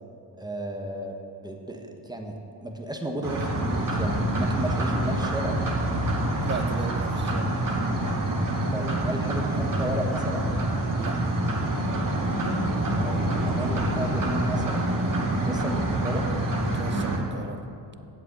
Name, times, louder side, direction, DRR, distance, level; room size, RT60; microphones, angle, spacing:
voice 1, 0.4-1.1 1.4-5.6 8.7-10.5 13.0-14.8 15.3-16.2, equal, 10° right, 3 dB, 1.4 m, -33 dB
sound 1, 3.2-17.2, right 1 dB, 45° right, 2.2 m, -26 dB
voice 2, 6.4-7.5 11.0-11.4 16.7-17.6, right 4 dB, 25° right, 11 dB, 0.6 m, -35 dB
8.1 x 7.6 x 8.9 m, 2.8 s
cardioid pair, 80°, 45 cm